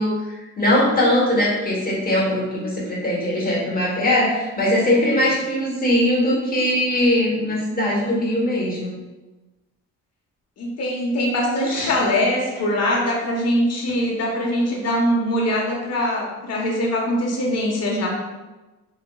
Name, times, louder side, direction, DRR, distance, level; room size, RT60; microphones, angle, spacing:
voice 1, 0.0-8.9 11.6-11.9, left 1 dB, 30° left, -4 dB, 1.1 m, -21 dB
voice 2, 10.6-18.1, left 1 dB, 55° left, -2 dB, 0.9 m, -22 dB
3.9 x 2.3 x 2.2 m, 1.1 s
cardioid pair, 90°, 30 cm